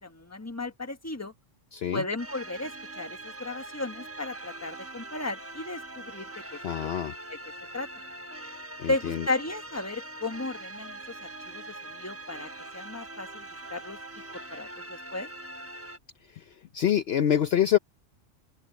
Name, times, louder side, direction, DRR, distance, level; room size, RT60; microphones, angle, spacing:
voice 1, 0.0-1.3 1.9-6.9 7.3-7.4 7.7-7.9 8.9-11.0 11.5-14.0 14.5-15.3, left 2 dB, 15° left, 1.4 m, -35 dB
voice 2, 1.7-2.0 6.6-7.1 8.8-9.2 16.4-16.5 16.7-17.8, left 10 dB, 60° left, 0.9 m, -25 dB
sound 1, 2.2-16.0, right 2 dB, 15° right, 0.9 m, -42 dB
omnidirectional pair, 1.3 m